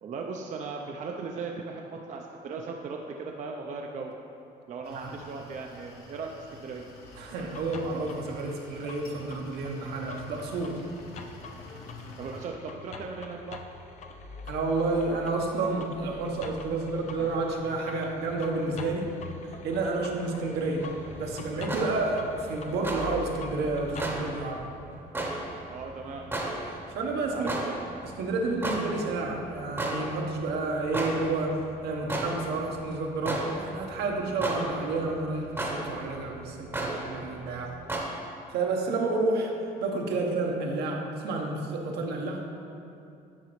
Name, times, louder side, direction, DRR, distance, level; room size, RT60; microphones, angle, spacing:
voice 1, 0.0-4.1 4.7-6.8 12.2-13.6 25.7-26.3 27.3-27.8, right 4 dB, 45° right, 1 dB, 0.5 m, -38 dB
sound 1, 4.8-12.5, left 2 dB, 75° left, 1.3 m, -48 dB
sound 2, 7.0-24.2, left 4 dB, 45° left, 0.5 m, -44 dB
voice 2, 7.1-10.8 14.5-19.1 19.5-20.9 21.2-24.7 26.9-27.7 28.2-37.8 38.5-39.5 39.8-42.4, right 3 dB, 75° right, 1 dB, 0.9 m, -30 dB
sound 3, 20.8-38.0, right 1 dB, 15° right, 0.8 m, -36 dB
10.5 x 4.0 x 3.1 m, 2.6 s
cardioid pair, 110°, 17 cm